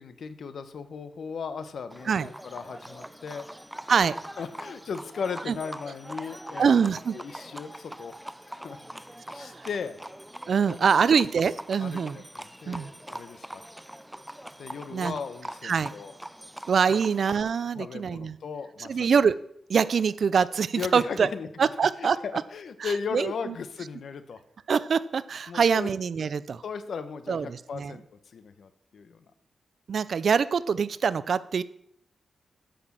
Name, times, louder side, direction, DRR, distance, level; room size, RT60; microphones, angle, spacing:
voice 1, 0.0-3.5 4.4-8.1 8.5-9.1 9.3-10.0 10.7-11.1 11.8-13.6 14.6-16.1 16.9-17.0 17.7-19.1 20.7-21.5 22.0-24.4 25.5-25.9 26.6-29.2, left 5 dB, 75° left, 11 dB, 1.0 m, -37 dB
Livestock farm animals working animals, 1.9-17.4, right 1 dB, 5° right, 0.5 m, -43 dB
voice 2, 6.6-7.2 9.4-9.7 10.5-12.2 12.7-12.9 14.9-15.2 15.6-15.9 16.7-18.4 18.9-19.4 19.7-21.3 21.6-22.2 22.8-23.3 24.7-26.6 27.3-27.9 29.9-31.6, right 6 dB, 65° right, 17 dB, 0.5 m, -24 dB
10.0 x 6.0 x 7.4 m, 0.73 s
cardioid pair, 85°, 0 cm